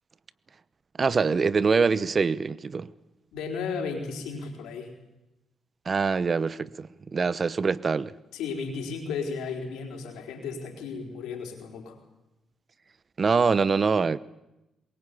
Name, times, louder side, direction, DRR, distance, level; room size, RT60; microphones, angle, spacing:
voice 1, 1.0-2.9 5.9-8.1 13.2-14.2, right 5 dB, 40° right, 0.9 m, -24 dB
voice 2, 3.3-4.9 8.3-12.0, left 5 dB, 85° left, 4.4 m, -34 dB
22.5 x 21.5 x 8.6 m
supercardioid pair, 65°, 0 cm